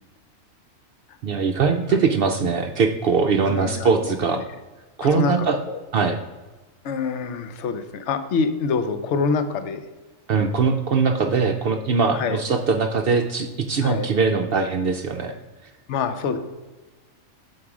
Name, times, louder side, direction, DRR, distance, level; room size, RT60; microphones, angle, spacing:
voice 1, 1.2-4.4 5.0-5.6 5.9-6.2 10.3-15.4, right 5 dB, 60° right, 6 dB, 0.6 m, -21 dB
voice 2, 3.5-3.9 5.2-5.3 5.7-5.8 6.8-9.8 12.1-12.4 13.8-14.1 15.9-16.4, left 5 dB, 65° left, 9 dB, 0.9 m, -25 dB
7.1 x 4.7 x 4.8 m, 1.2 s
omnidirectional pair, 1.4 m